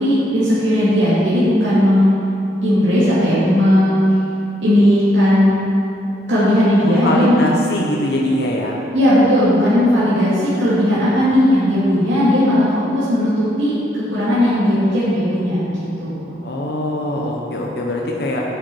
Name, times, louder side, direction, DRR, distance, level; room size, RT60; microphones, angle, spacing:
voice 1, 0.0-2.1 2.6-4.1 4.6-5.6 6.3-7.4 8.9-16.3, equal, 75° right, -11 dB, 2.4 m, -16 dB
voice 2, 6.9-8.8 16.4-18.4, left 1 dB, 60° left, -2 dB, 0.9 m, -22 dB
8.6 x 7.7 x 4.6 m, 2.7 s
head